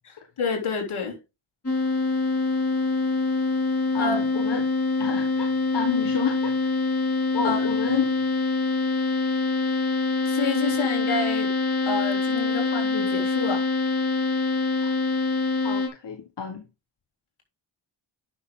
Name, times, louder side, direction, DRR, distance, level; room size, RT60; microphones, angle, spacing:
voice 1, 0.4-1.2 4.0-4.2 7.4-7.7 10.2-11.5 11.8-13.6, left 4 dB, 80° left, 3.4 m, -28 dB
sound 1, 1.6-15.9, left 3 dB, 30° left, 4.0 m, -25 dB
voice 2, 3.9-4.7 5.0-6.5 7.3-8.2 14.8-14.9 15.6-16.6, left 6 dB, 55° left, 1.5 m, -30 dB
10.5 x 6.3 x 3.8 m
cardioid pair, 70°, 49 cm